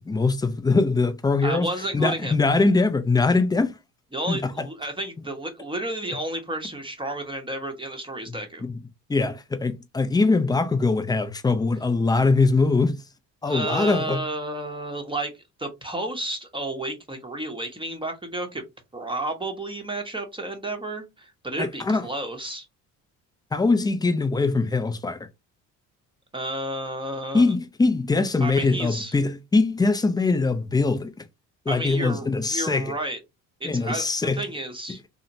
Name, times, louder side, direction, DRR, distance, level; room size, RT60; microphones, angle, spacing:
voice 1, 0.1-1.7 1.9-3.8 4.3-4.7 8.3-8.8 9.1-13.0 13.4-14.2 21.6-22.1 23.5-25.2 27.3-31.1 31.7-32.9 33.6-34.4, left 3 dB, 10° left, 0.3 m, -22 dB
voice 2, 1.4-2.3 4.1-8.6 13.4-15.3 15.6-18.6 18.9-22.7 26.3-27.4 28.4-29.1 31.7-33.2 33.6-35.0, right 1 dB, 15° right, 0.7 m, -31 dB
2.8 x 2.1 x 2.5 m
supercardioid pair, 75°, 39 cm